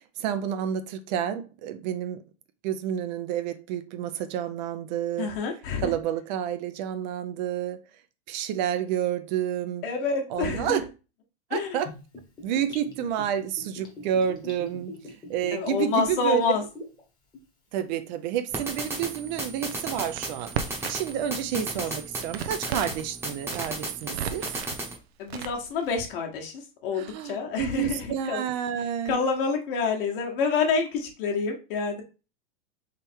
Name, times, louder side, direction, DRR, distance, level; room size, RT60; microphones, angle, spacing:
voice 1, 0.0-2.2 2.6-5.3 5.8-7.8 8.3-9.9 10.3-10.8 11.5-11.9 12.4-14.9 15.3-16.5 17.7-24.6 27.0-29.2, right 10 dB, 50° right, 0.5 m, -29 dB
voice 2, 5.2-5.9 9.8-10.8 11.5-11.8 15.5-16.6 21.5-21.6 25.2-28.4 29.0-32.0, left 5 dB, 60° left, 1.4 m, -28 dB
Gurgling / Bathtub (filling or washing), 11.8-17.0 17.3-17.4, left 1 dB, 15° left, 1.1 m, -42 dB
sound 1, 18.5-25.0, right 2 dB, 10° right, 0.9 m, -35 dB
Crackle, 19.7-21.2 21.5-23.0 23.4-24.8 25.3-25.9, right 8 dB, 85° right, 0.7 m, -35 dB
3.7 x 3.2 x 4.4 m
supercardioid pair, 150°, 30 cm